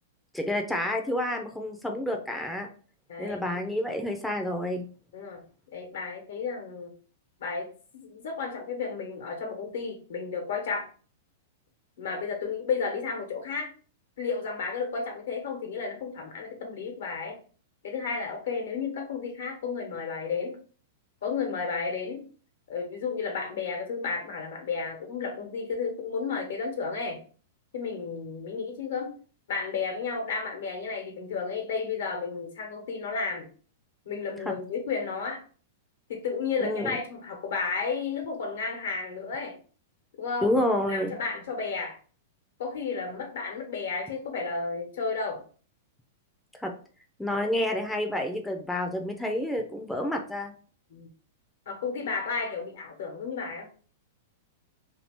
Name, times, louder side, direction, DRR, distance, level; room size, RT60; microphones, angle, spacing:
voice 1, 0.3-2.7 3.2-4.9 34.5-34.6 36.6-36.9 40.4-41.1 46.6-46.7 47.2-50.6, left 1 dB, 5° left, 2 dB, 0.4 m, -29 dB
voice 2, 3.1-3.7 5.1-5.4 5.7-7.0 7.4-10.9 12.0-13.7 14.2-17.4 17.8-20.6 21.2-22.2 22.7-27.2 27.7-29.1 29.5-33.5 34.0-35.4 36.1-39.6 40.2-40.5 40.9-42.0 42.6-45.4 50.9-51.1 51.7-53.7, left 5 dB, 75° left, 3 dB, 1.0 m, -32 dB
2.7 x 2.4 x 3.5 m, 0.41 s
hypercardioid pair, 125°, 0 cm